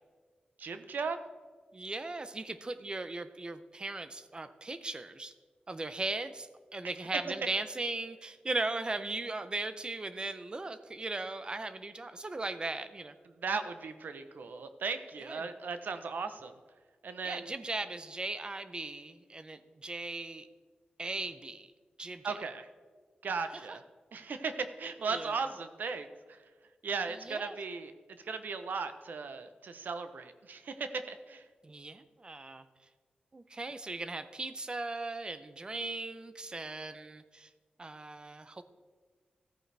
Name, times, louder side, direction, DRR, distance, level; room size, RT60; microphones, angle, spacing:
voice 1, 0.6-1.2 6.8-6.9 13.4-16.5 17.0-17.5 22.2-22.7 23.2-23.8 24.1-26.4 26.8-27.9 28.2-31.4, right 4 dB, 90° right, 9 dB, 0.8 m, -37 dB
voice 2, 1.7-5.3 5.7-13.1 15.2-15.4 17.2-20.5 21.0-21.7 22.0-22.4 23.7-23.8 25.0-25.4 27.1-27.5 31.6-32.6 33.3-37.5 37.8-38.6, right 2 dB, 30° right, 11 dB, 0.6 m, -38 dB
14.5 x 9.0 x 3.4 m, 1.5 s
wide cardioid pair, 125°, 3 cm